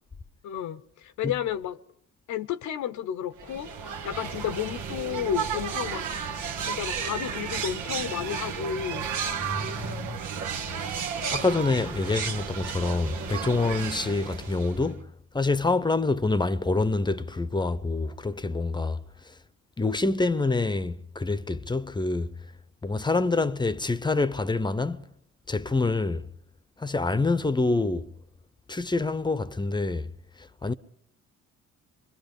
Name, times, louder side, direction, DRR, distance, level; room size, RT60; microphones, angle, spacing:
voice 1, 0.4-1.8 2.3-6.1 6.6-9.1, left 10 dB, 75° left, 0.8 m, -32 dB
sound 1, 3.4-15.0, right 6 dB, 90° right, 1.5 m, -33 dB
voice 2, 9.4-10.2 11.3-19.3 19.8-22.3 22.8-25.1 25.5-26.3 26.8-28.1 28.7-30.1 30.4-30.7, left 3 dB, 15° left, 0.8 m, -26 dB
24.0 x 23.0 x 5.3 m
cardioid pair, 90°, 30 cm